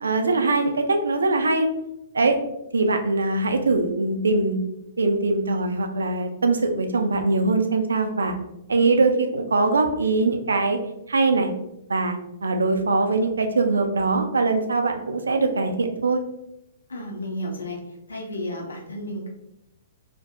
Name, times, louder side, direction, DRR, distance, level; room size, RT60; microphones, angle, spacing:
voice 1, 0.0-1.7 2.1-2.4 2.7-4.6 5.0-8.4 8.7-10.8 11.1-11.5 11.9-16.2, right 3 dB, 85° right, 5 dB, 0.3 m, -22 dB
voice 2, 16.9-17.8 18.1-19.3, left 1 dB, 85° left, 0 dB, 0.5 m, -32 dB
2.5 x 2.3 x 2.2 m, 0.85 s
hypercardioid pair, 120°, 0 cm